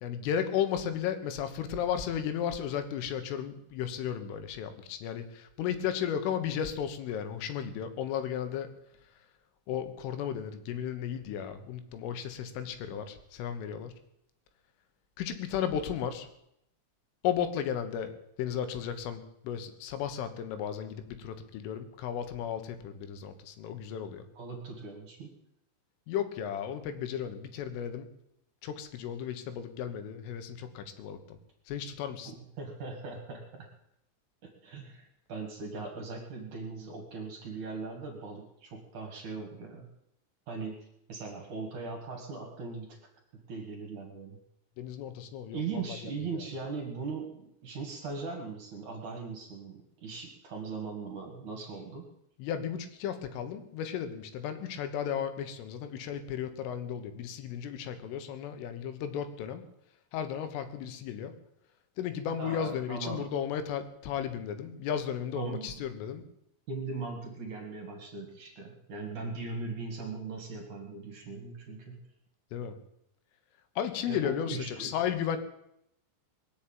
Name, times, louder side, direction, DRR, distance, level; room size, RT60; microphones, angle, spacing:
voice 1, 0.0-8.7 9.7-13.9 15.2-16.3 17.2-18.1 18.4-24.3 26.1-28.1 28.6-31.4 31.7-32.3 44.8-46.4 52.4-59.7 60.1-61.3 62.0-66.2 72.5-72.8 73.8-75.4, left 9 dB, 85° left, 9 dB, 3.9 m, -34 dB
voice 2, 24.3-25.3 32.3-33.7 34.4-39.9 40.5-40.8 41.1-43.0 43.5-44.4 45.5-52.1 62.4-63.3 65.3-65.8 66.7-72.0 74.1-75.0, right 4 dB, 50° right, 2 dB, 2.7 m, -39 dB
21.0 x 7.4 x 8.9 m, 0.79 s
omnidirectional pair, 5.6 m